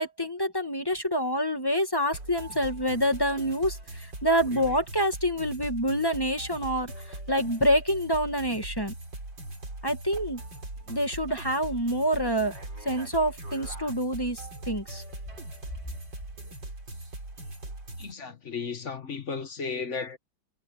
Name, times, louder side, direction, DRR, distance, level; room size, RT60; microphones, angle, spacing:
voice 1, 0.0-8.9 9.8-10.4 10.9-12.5 12.9-15.0, equal, 10° left, 1.9 m, -27 dB
sound 1, 2.1-18.1, right 2 dB, 65° right, 7.2 m, -40 dB
voice 2, 18.0-20.2, left 5 dB, 45° left, 1.3 m, -34 dB
omnidirectional pair, 2.1 m